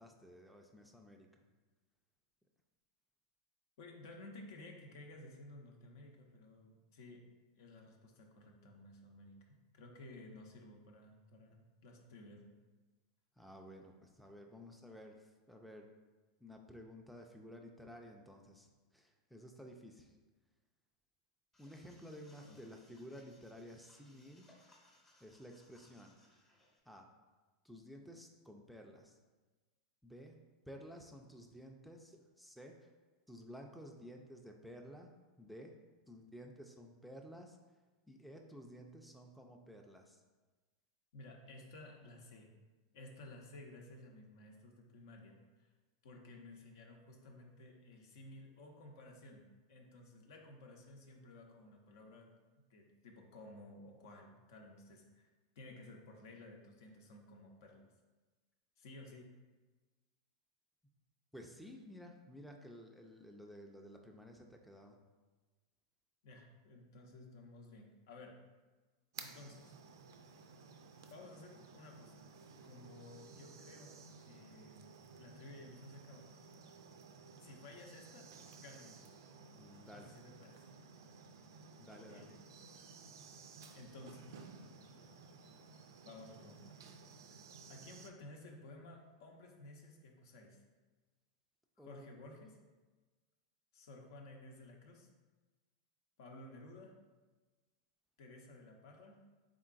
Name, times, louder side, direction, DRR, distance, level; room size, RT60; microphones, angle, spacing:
voice 1, 0.0-1.4 13.4-15.9 16.4-20.1 21.6-24.5 25.2-26.2 26.9-27.1 27.6-29.2 30.0-30.4 30.7-32.9 33.3-35.1 35.4-35.8 36.1-37.6 38.1-40.2 61.3-65.0 79.5-80.1 81.8-82.4 91.8-92.1, equal, ahead, 2 dB, 0.4 m, -53 dB
voice 2, 3.8-7.3 7.6-12.5 22.5-22.6 41.1-42.6 42.9-45.7 46.0-55.3 55.6-57.8 58.8-59.4 66.2-68.4 69.2-69.7 71.1-72.3 72.6-76.3 77.4-79.0 79.9-80.7 82.0-82.3 83.7-84.4 86.0-86.8 87.7-90.6 91.8-92.6 93.7-95.1 96.2-96.9 98.2-99.2, left 2 dB, 70° left, 2 dB, 0.7 m, -55 dB
sound 1, 21.5-26.8, left 1 dB, 15° left, 0.8 m, -68 dB
sound 2, 69.1-88.1, right 5 dB, 80° right, 0.4 m, -56 dB
3.7 x 3.6 x 2.5 m, 1.2 s
hypercardioid pair, 110°, 2 cm